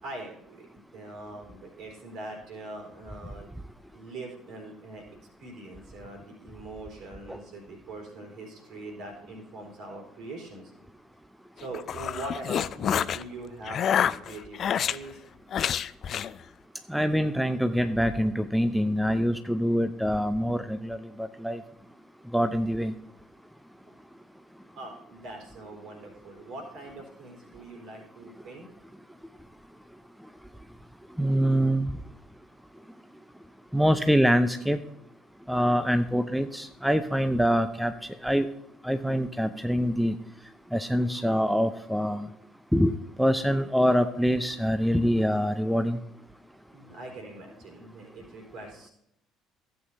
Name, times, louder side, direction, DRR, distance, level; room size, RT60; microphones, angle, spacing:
voice 1, 0.0-3.5 3.9-5.0 5.4-10.7 11.6-15.2 24.8-28.7 46.7-48.9, right 2 dB, 55° right, 1 dB, 3.9 m, -42 dB
sound 1, 11.6-13.2 13.7-15.0 15.5-16.3, left 9 dB, 45° left, 0.3 m, -27 dB
voice 2, 16.9-21.6 22.3-22.9 31.2-32.0 33.7-34.8 35.5-37.9 38.2-38.5 38.8-40.2 40.7-42.3 42.7-46.0, equal, ahead, 10 dB, 0.6 m, -25 dB
15.5 x 8.2 x 2.8 m, 0.79 s
figure-of-eight pair, 55°, 0 cm